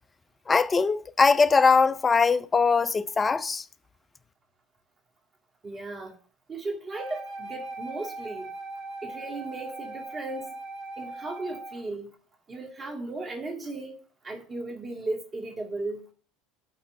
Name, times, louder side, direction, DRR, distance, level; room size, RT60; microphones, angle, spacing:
voice 1, 0.5-3.6, left 4 dB, 25° left, 0.5 m, -21 dB
voice 2, 5.6-6.2 6.5-8.5 9.0-10.5 11.0-12.1 12.5-13.9 14.2-16.1, right 2 dB, 30° right, 2.1 m, -36 dB
Wind instrument woodwind instrument, 6.9-11.8, right 2 dB, 55° right, 1.8 m, -39 dB
8.3 x 4.1 x 6.3 m
figure-of-eight pair, 65°, 0 cm